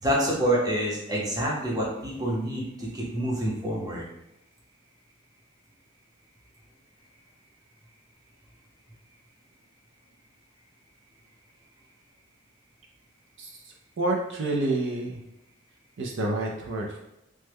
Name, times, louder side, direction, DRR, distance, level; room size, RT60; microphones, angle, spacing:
voice 1, 0.0-4.1, right 1 dB, 20° right, -4 dB, 0.7 m, -27 dB
voice 2, 13.4-15.2 16.0-17.0, right 2 dB, 60° right, 0 dB, 0.4 m, -29 dB
3.2 x 2.1 x 3.3 m, 0.88 s
head